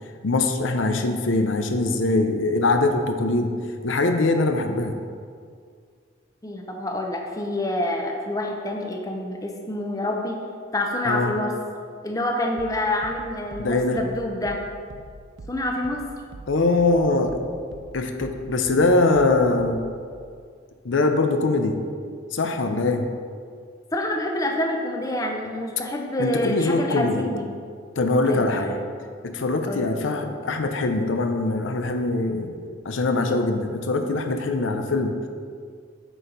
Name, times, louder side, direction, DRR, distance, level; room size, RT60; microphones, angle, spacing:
voice 1, 0.2-3.6 3.8-5.0 11.0-11.4 13.6-14.0 16.5-17.4 17.9-19.8 20.8-21.8 22.3-23.1 26.2-27.3 28.0-28.8 29.2-32.6 32.8-35.2, left 2 dB, 85° left, 6 dB, 0.7 m, -22 dB
voice 2, 6.4-10.4 10.7-11.5 12.0-14.6 15.5-16.0 23.9-27.5 28.3-28.5 28.7-28.8 29.7-29.8, left 1 dB, 20° left, 1 dB, 0.7 m, -27 dB
sound 1, 12.6-20.1, right 2 dB, 80° right, 0.6 m, -44 dB
8.7 x 4.5 x 5.1 m, 2.1 s
head